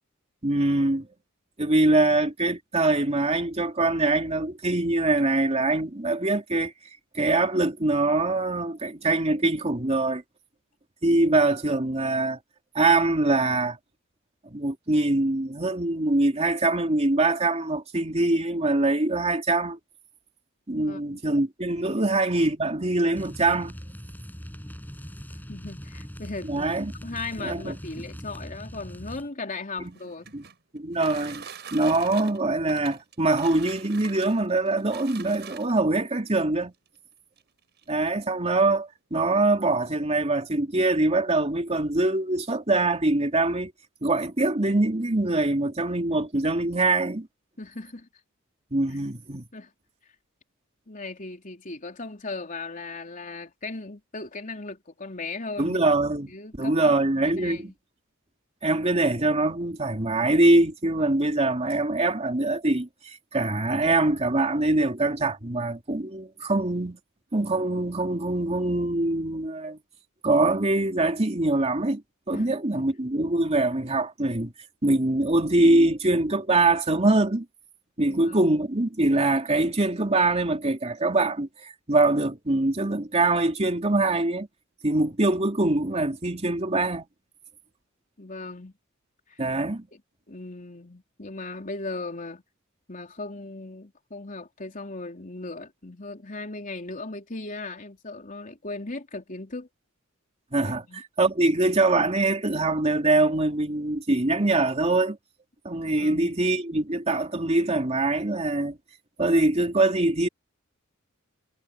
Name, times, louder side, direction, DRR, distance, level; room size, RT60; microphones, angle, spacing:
voice 1, 0.4-1.1 1.6-6.7 7.1-10.2 11.0-12.4 12.7-13.8 14.5-19.8 20.7-23.7 26.4-26.9 27.4-27.7 29.8-29.9 30.3-30.5 30.7-36.7 37.9-43.7 44.0-47.3 48.7-49.5 55.6-56.3 56.6-57.7 58.6-67.0 67.3-69.8 70.2-72.0 72.3-74.5 74.8-77.5 78.0-84.5 84.8-87.0 89.4-89.9 100.5-105.2 105.6-108.8 109.2-110.3, right 2 dB, 30° right, 2.8 m, -23 dB
voice 2, 20.7-21.2 25.5-26.8 27.0-30.3 47.6-48.1 48.9-49.0 49.5-49.7 50.9-55.8 56.3-57.0 57.2-57.7 66.4-66.5 72.3-72.5 78.0-78.5 88.2-88.7 89.3-89.4 89.9-90.0 90.3-92.4 92.9-99.7 100.7-101.0 106.0-106.3, left 3 dB, 40° left, 3.6 m, -37 dB
sound 1, 23.2-29.3, equal, 10° left, 5.8 m, -41 dB
sound 2, 29.8-36.0 36.9-37.0 37.4-37.5 37.8-38.1, right 8 dB, 55° right, 6.0 m, -44 dB
head